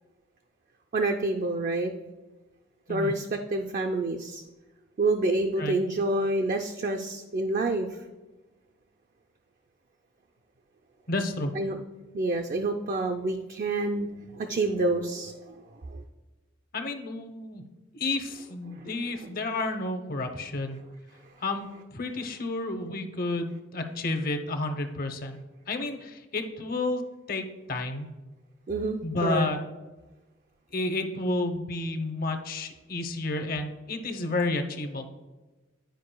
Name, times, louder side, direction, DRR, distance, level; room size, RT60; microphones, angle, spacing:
voice 1, 0.9-1.9 2.9-4.4 5.0-8.0 11.6-11.8 12.1-14.1 14.3-16.0 18.7-18.9 28.7-29.5, right 2 dB, 45° right, 5 dB, 0.4 m, -28 dB
voice 2, 11.1-11.5 16.7-17.6 17.9-20.8 21.4-25.4 25.7-27.0 27.3-28.1 29.0-29.6 30.7-35.1, left 2 dB, 50° left, 6 dB, 0.7 m, -31 dB
10.5 x 4.8 x 2.2 m, 1.2 s
head